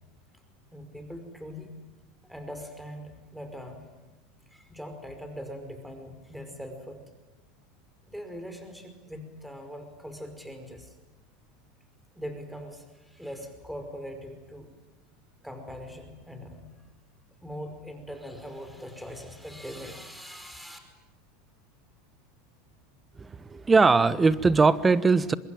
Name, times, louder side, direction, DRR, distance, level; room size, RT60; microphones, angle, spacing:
voice 1, 0.7-1.7 2.3-3.9 4.5-7.0 8.1-10.9 12.2-14.7 15.4-16.7 17.4-20.8, equal, ahead, 6 dB, 5.3 m, -41 dB
voice 2, 23.2-25.3, right 4 dB, 20° right, 16 dB, 1.2 m, -21 dB
25.0 x 21.5 x 9.3 m, 1.1 s
hypercardioid pair, 95°, 0 cm